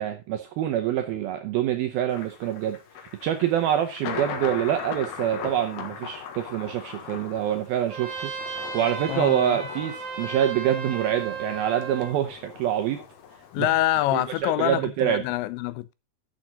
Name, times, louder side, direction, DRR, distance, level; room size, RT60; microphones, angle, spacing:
voice 1, 0.0-2.8 3.2-8.3 8.7-13.0 13.6-13.7 14.1-15.2, right 11 dB, 80° right, 2.2 m, -26 dB
Thunder, 2.1-14.4, left 7 dB, 65° left, 3.0 m, -40 dB
Trumpet, 7.9-12.2, right 5 dB, 50° right, 2.5 m, -35 dB
voice 2, 9.1-9.6 13.5-15.9, left 15 dB, 80° left, 2.9 m, -26 dB
11.0 x 7.4 x 3.9 m
omnidirectional pair, 5.3 m